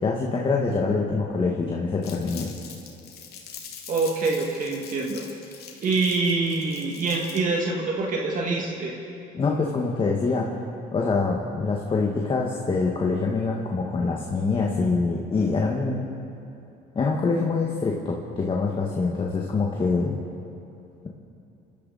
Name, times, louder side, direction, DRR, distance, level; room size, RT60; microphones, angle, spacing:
voice 1, 0.0-2.5 9.3-10.6 10.9-16.1 16.9-20.2, left 4 dB, 30° left, -1 dB, 1.7 m, -25 dB
Crumpling crinkling, 2.0-7.6, left 7 dB, 70° left, 2.7 m, -43 dB
voice 2, 3.9-5.2 5.8-9.0, right 3 dB, 50° right, -1 dB, 2.2 m, -25 dB
27.5 x 12.5 x 4.2 m, 2.8 s
cardioid pair, 110°, 17 cm